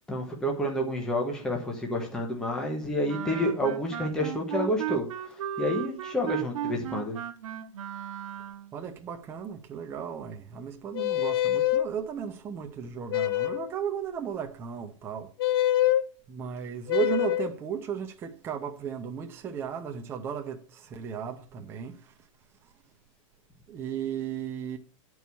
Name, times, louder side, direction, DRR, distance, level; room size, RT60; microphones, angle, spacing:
voice 1, 0.1-7.2, equal, 5° left, 1.1 m, -29 dB
Wind instrument woodwind instrument, 3.1-8.7, right 11 dB, 80° right, 0.9 m, -35 dB
voice 2, 8.7-15.3 16.3-22.1 23.7-24.8, right 8 dB, 15° right, 0.7 m, -35 dB
sound 1, 10.9-11.9 13.1-13.7 15.4-16.0 16.9-17.5, left 13 dB, 50° left, 0.5 m, -25 dB
9.8 x 4.7 x 6.9 m
supercardioid pair, 175°, 17 cm